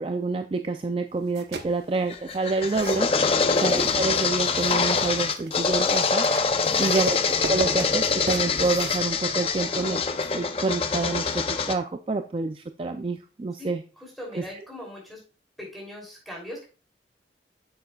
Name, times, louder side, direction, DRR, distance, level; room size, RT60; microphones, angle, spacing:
voice 1, 0.0-3.1 3.5-6.3 6.8-7.2 7.5-10.0 10.3-13.8 14.3-14.4, right 3 dB, 30° right, 7 dB, 0.3 m, -27 dB
sound 1, 1.2-9.8, right 3 dB, 70° right, 0.8 m, -40 dB
sound 2, 2.1-11.8, left 5 dB, 30° left, 0.5 m, -24 dB
voice 2, 6.5-6.9 13.6-13.7 14.0-15.2 15.6-16.6, left 1 dB, ahead, -2 dB, 3.0 m, -40 dB
8.6 x 6.8 x 2.3 m, 0.34 s
head